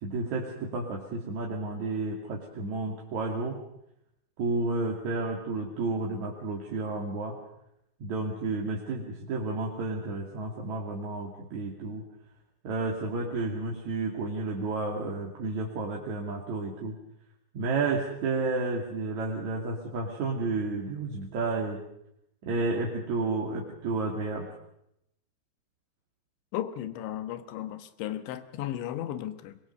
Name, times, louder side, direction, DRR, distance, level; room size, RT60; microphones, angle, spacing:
voice 1, 0.0-3.6 4.4-7.4 8.0-12.0 12.6-16.9 17.5-21.8 22.4-24.5, right 3 dB, 45° right, -2 dB, 3.2 m, -31 dB
voice 2, 26.5-29.6, left 12 dB, 85° left, 11 dB, 3.6 m, -35 dB
23.0 x 22.0 x 6.6 m, 0.79 s
omnidirectional pair, 5.2 m